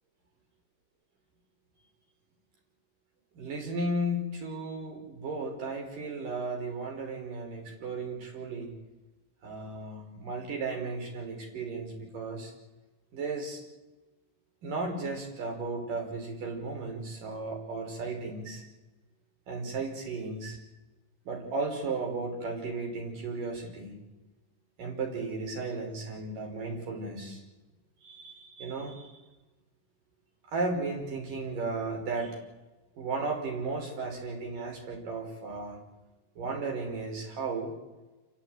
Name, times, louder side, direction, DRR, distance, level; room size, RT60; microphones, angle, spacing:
voice 1, 3.3-8.7 9.4-12.5 13.1-13.6 14.6-18.6 19.5-20.6 21.3-24.0 24.8-27.4 28.0-29.2 30.5-32.4 33.0-35.8 36.4-37.7, right 3 dB, 65° right, 2 dB, 6.7 m, -35 dB
29.0 x 16.0 x 9.1 m, 1.1 s
omnidirectional pair, 4.0 m